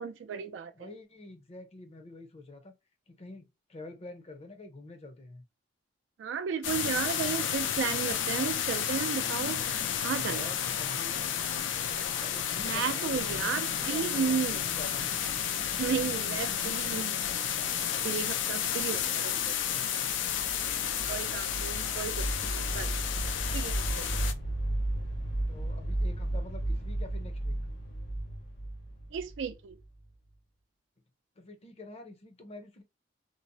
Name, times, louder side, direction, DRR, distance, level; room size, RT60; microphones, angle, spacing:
voice 1, 0.0-0.9 6.2-9.6 10.0-10.4 12.6-14.6 15.8-17.2 18.0-19.6 21.1-22.9 23.5-24.1 29.1-29.8, right 7 dB, 75° right, 0.4 m, -34 dB
voice 2, 0.7-2.7 3.1-5.4 10.1-11.2 12.2-13.4 13.7-15.2 25.5-27.6 31.4-32.8, left 2 dB, 35° left, 0.6 m, -47 dB
sound 1, 6.6-24.3, left 9 dB, 85° left, 0.4 m, -31 dB
sound 2, 20.2-30.1, right 1 dB, 65° left, 1.1 m, -34 dB
2.7 x 2.0 x 2.6 m
head